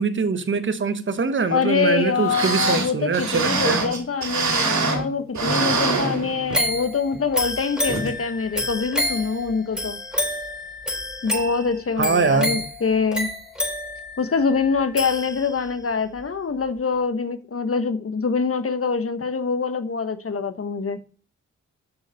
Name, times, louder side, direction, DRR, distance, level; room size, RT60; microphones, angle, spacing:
voice 1, 0.0-3.8 12.0-12.6, right 4 dB, 40° right, 1.1 m, -23 dB
voice 2, 1.5-10.0 11.2-13.3 14.2-21.0, left 5 dB, 45° left, 1.2 m, -24 dB
sound 1, 2.0-2.1 2.3-5.1 5.3-6.7 7.1-7.2 7.9-8.1 8.6-8.7, right 4 dB, 60° right, 2.4 m, -24 dB
sound 2, 6.5-15.8 16.2-16.3, equal, 5° right, 4.4 m, -29 dB
6.5 x 5.9 x 6.5 m
supercardioid pair, 45°, 32 cm